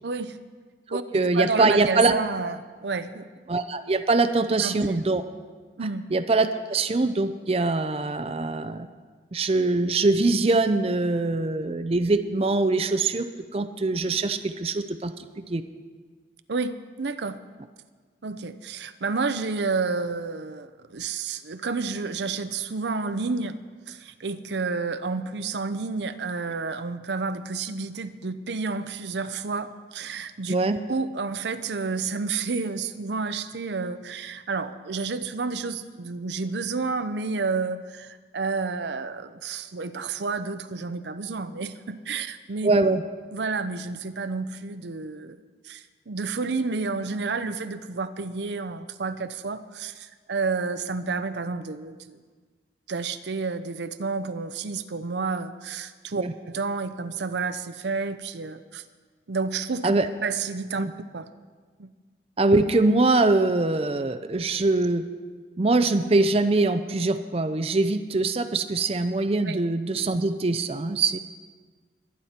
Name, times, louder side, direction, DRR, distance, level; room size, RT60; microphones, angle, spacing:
voice 1, 0.0-0.4 0.9-2.6 2.8-3.3 4.6-5.0 5.8-6.0 16.5-17.4 18.2-23.6 23.9-30.6 30.9-42.7 43.3-45.4 45.6-52.2 52.9-58.8 59.3-59.9 60.2-60.9 61.1-61.3 61.8-61.9 69.5-69.6, right 4 dB, 75° right, 11 dB, 0.6 m, -30 dB
voice 2, 0.9-2.1 3.5-5.2 6.1-8.9 9.3-13.3 13.5-15.6 30.5-30.8 42.6-43.0 56.1-56.3 59.8-60.1 60.8-60.9 62.4-65.0 65.6-71.2, right 3 dB, 35° right, 9 dB, 0.5 m, -23 dB
22.5 x 9.7 x 4.3 m, 1.5 s
head